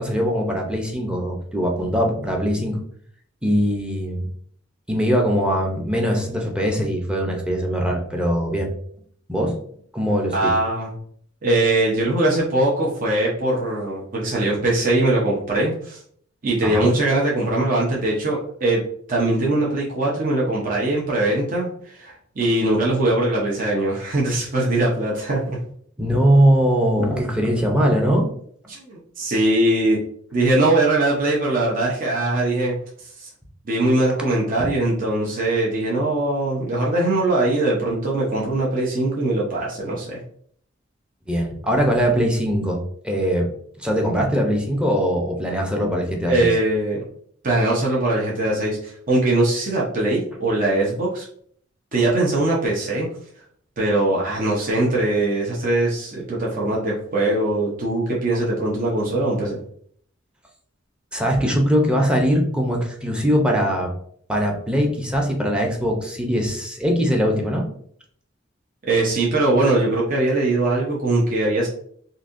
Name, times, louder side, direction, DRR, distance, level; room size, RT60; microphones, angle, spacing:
voice 1, 0.0-2.8 3.4-4.2 4.9-8.7 9.3-9.6 9.9-10.6 16.6-16.9 26.0-28.3 34.6-34.7 41.3-43.5 43.8-46.5 61.1-63.9 64.3-67.7, equal, 5° right, 0 dB, 0.7 m, -21 dB
voice 2, 10.3-10.9 11.4-16.0 16.4-18.8 19.1-25.6 28.7-30.0 30.3-33.3 33.6-40.2 46.3-47.0 47.4-51.3 51.9-53.1 53.8-59.6 68.9-71.7, right 2 dB, 45° right, -4 dB, 0.7 m, -21 dB
3.9 x 2.7 x 2.6 m, 0.62 s
head